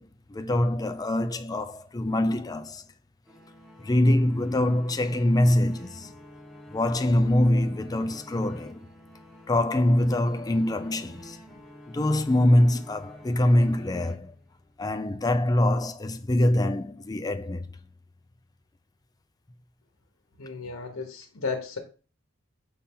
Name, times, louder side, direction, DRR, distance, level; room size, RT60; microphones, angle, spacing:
voice 1, 0.0-2.8 3.8-6.1 6.7-8.9 9.5-11.4 11.9-14.3 14.8-17.7, left 1 dB, 20° left, 0.4 m, -24 dB
sound 1, 3.3-14.7, left 1 dB, ahead, 1.3 m, -48 dB
voice 2, 20.4-21.8, left 4 dB, 90° left, 1.1 m, -34 dB
6.8 x 4.2 x 3.7 m
head